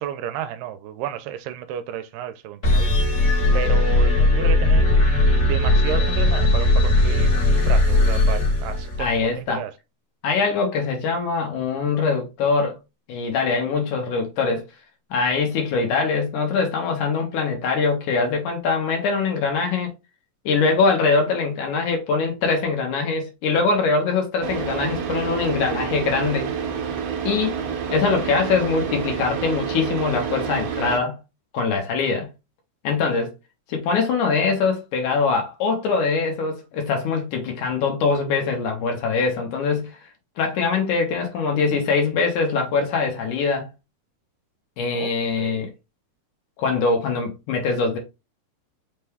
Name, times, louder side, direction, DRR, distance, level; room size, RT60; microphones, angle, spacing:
voice 1, 0.0-3.2 3.5-9.7 44.9-45.1 45.4-45.7, right 9 dB, 80° right, 2.2 m, -32 dB
sound 1, 2.6-9.2, left 2 dB, 55° left, 1.4 m, -18 dB
voice 2, 9.0-9.6 10.2-12.8 13.1-14.6 15.1-19.9 20.5-26.5 27.2-27.5 27.9-31.2 31.5-32.3 32.8-33.3 33.7-40.0 40.4-43.7 44.8-45.7 46.6-48.0, left 4 dB, 70° left, 2.1 m, -23 dB
Car / Idling, 24.4-31.0, right 7 dB, 65° right, 1.6 m, -28 dB
5.5 x 2.2 x 3.3 m
omnidirectional pair, 4.1 m